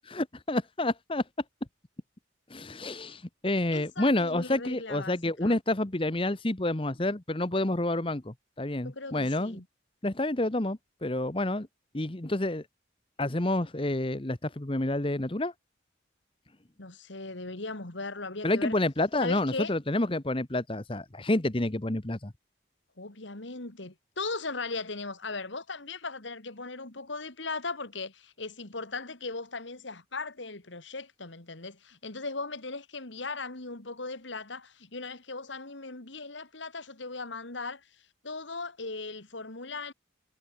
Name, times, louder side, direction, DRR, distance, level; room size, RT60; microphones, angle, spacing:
voice 1, 0.1-1.2 2.5-9.6 10.0-11.7 11.9-12.6 13.2-15.5 18.4-22.3, left 1 dB, 30° left, 1.1 m, -29 dB
voice 2, 3.7-5.1 5.4-5.5 8.8-9.6 16.8-18.8 19.2-19.7 23.0-37.9 38.2-39.9, left 3 dB, 75° left, 2.5 m, -38 dB
head